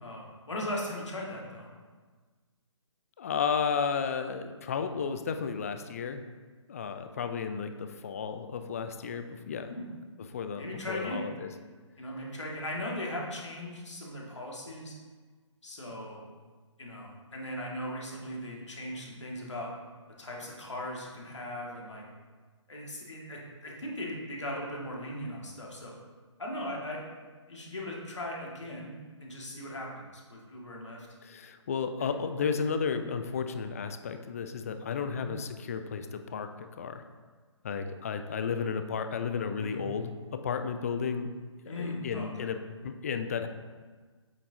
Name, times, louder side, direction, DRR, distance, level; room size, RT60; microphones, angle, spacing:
voice 1, 0.0-1.7 9.7-9.9 10.6-11.3 12.0-14.9 15.6-16.2 16.8-19.7 20.2-22.0 22.7-25.9 26.4-27.0 27.5-31.1 32.0-32.2 35.0-35.3 39.6-39.9 41.7-42.5, left 1 dB, 65° left, -3 dB, 1.9 m, -38 dB
voice 2, 3.2-6.2 6.7-9.7 10.3-11.5 31.2-37.0 37.6-41.3 41.6-42.6 42.8-43.5, left 6 dB, 30° left, 8 dB, 0.4 m, -33 dB
8.3 x 6.7 x 2.8 m, 1.4 s
figure-of-eight pair, 135°, 16 cm